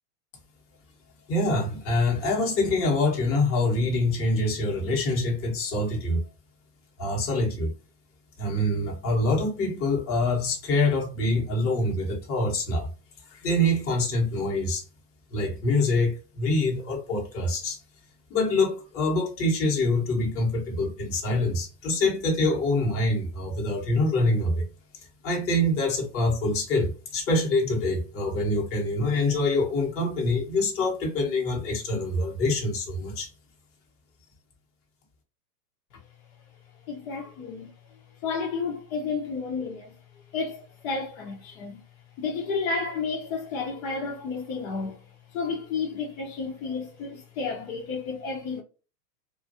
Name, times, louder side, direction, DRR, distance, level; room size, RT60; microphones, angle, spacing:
voice 1, 1.3-6.2 7.0-7.7 8.4-12.9 13.3-14.8 15.3-17.8 18.3-24.6 25.2-33.3, left 2 dB, 25° left, 1.1 m, -25 dB
voice 2, 36.9-37.7 38.2-39.9 40.3-41.8 42.2-45.0 45.3-48.6, left 4 dB, 55° left, 1.0 m, -31 dB
2.5 x 2.4 x 2.7 m
hypercardioid pair, 110°, 49 cm